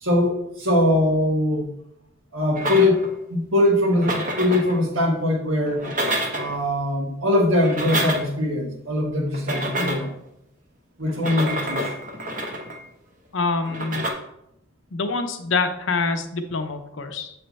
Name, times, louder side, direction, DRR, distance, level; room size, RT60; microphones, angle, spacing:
voice 1, 0.0-1.7 2.3-5.9 6.3-10.1 11.0-11.9, left 1 dB, 85° right, 0 dB, 1.5 m, -22 dB
sound 1, 2.6-3.2 3.8-4.8 5.7-6.6 7.5-8.4 9.3-10.2 11.1-12.8 13.7-14.1, right 1 dB, 40° right, 0.9 m, -28 dB
voice 2, 13.3-14.0 14.9-17.3, left 3 dB, 75° left, 7 dB, 0.7 m, -26 dB
7.8 x 3.3 x 4.1 m, 0.79 s
head